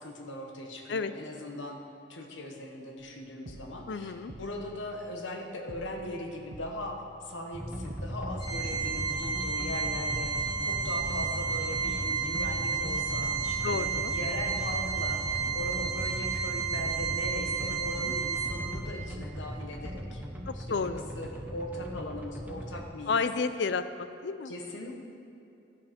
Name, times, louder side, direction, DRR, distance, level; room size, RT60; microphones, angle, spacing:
voice 1, 0.0-1.8 2.1-20.2 20.5-23.3 24.4-24.9, left 1 dB, 85° left, 2 dB, 1.3 m, -40 dB
sound 1, 3.0-3.1 3.5-5.4 5.7-7.6 7.9-9.8 10.1-12.0 12.3-14.2 14.6-16.5 16.8-20.9 21.2-21.3, right 2 dB, 50° right, 0.6 m, -49 dB
voice 2, 3.9-4.4 13.6-14.2 17.7-18.1 20.5-21.0 23.1-24.5, left 4 dB, 65° left, 12 dB, 0.4 m, -32 dB
Moog Bass Sequence, 7.5-22.8, equal, 10° right, 0.7 m, -38 dB
Organ, 8.4-19.0, right 6 dB, 20° left, 1.8 m, -32 dB
11.5 x 7.9 x 5.1 m, 2.7 s
head